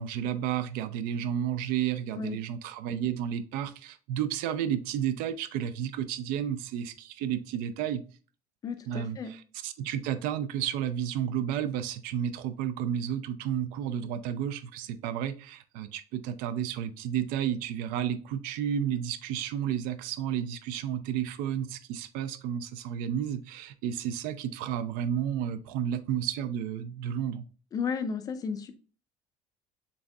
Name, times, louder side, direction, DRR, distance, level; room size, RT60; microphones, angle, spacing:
voice 1, 0.0-8.0 8.9-27.5, right 9 dB, 75° right, 0.4 m, -32 dB
voice 2, 8.6-9.3 27.7-28.7, left 5 dB, 25° left, 0.4 m, -33 dB
7.0 x 2.6 x 2.3 m
cardioid pair, 175°, 15 cm